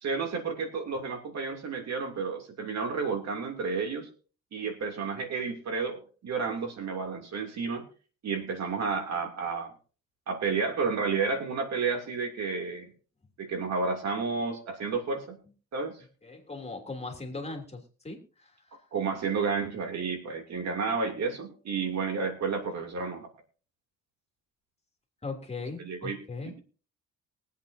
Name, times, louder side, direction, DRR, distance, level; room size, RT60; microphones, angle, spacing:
voice 1, 0.0-4.1 4.5-7.8 8.2-9.7 10.3-12.9 13.4-15.4 15.7-16.0 18.9-23.3 25.8-26.2 26.4-26.6, right 5 dB, 60° right, 3 dB, 2.9 m, -31 dB
voice 2, 16.2-18.6 25.2-26.5, left 3 dB, 20° left, 2 dB, 3.1 m, -39 dB
23.0 x 8.3 x 2.8 m, 0.39 s
cardioid pair, 90°, 30 cm